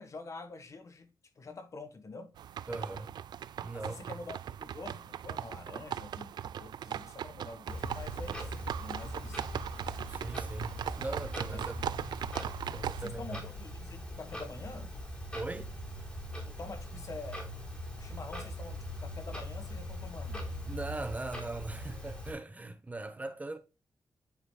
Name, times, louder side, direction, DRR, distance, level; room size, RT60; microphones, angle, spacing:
voice 1, 0.0-2.3 3.7-9.4 11.5-11.7 13.0-14.9 16.4-17.4 17.9-20.5, left 3 dB, 45° left, 1.4 m, -46 dB
sound 1, 2.4-13.1, right 9 dB, 85° right, 0.4 m, -39 dB
voice 2, 2.7-3.1 3.6-4.2 10.1-12.4 12.7-13.4 15.3-15.7 20.7-23.6, right 2 dB, 20° right, 0.8 m, -40 dB
Clock, 7.7-22.3, equal, 15° left, 3.9 m, -41 dB
9.7 x 5.1 x 2.2 m
wide cardioid pair, 110°, 7 cm